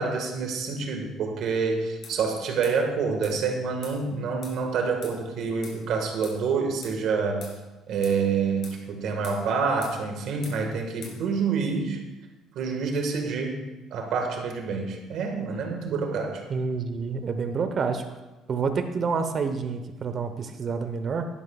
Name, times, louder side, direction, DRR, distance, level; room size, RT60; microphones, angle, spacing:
voice 1, 0.0-7.5 7.9-12.0 12.5-13.6 13.9-16.4, right 5 dB, 65° right, 3 dB, 1.7 m, -27 dB
sound 1, 2.0-2.2 2.6-2.8 3.2-3.4 3.8-4.0 4.4-4.6 5.0-5.2 5.6-5.8 6.2-6.4 6.8-7.0 7.4-7.6 8.0-8.2 8.6-8.8 9.2-9.4 9.8-10.0 10.4-10.6 11.0-11.2, left 4 dB, 55° left, 2.5 m, -44 dB
voice 2, 16.5-18.0 18.5-21.3, right 5 dB, 45° right, 8 dB, 1.0 m, -28 dB
11.5 x 11.0 x 2.4 m, 1.1 s
cardioid pair, 105°, 0 cm